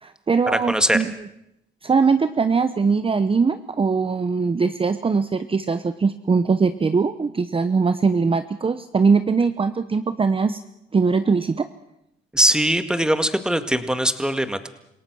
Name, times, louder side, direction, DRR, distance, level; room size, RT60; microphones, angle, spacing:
voice 1, 0.0-1.1 1.8-10.6 10.9-11.7, right 5 dB, 25° right, 10 dB, 0.9 m, -21 dB
voice 2, 0.5-1.0 12.3-14.7, right 1 dB, 5° right, 9 dB, 1.9 m, -21 dB
28.0 x 17.5 x 6.3 m, 0.83 s
cardioid pair, 90°, 20 cm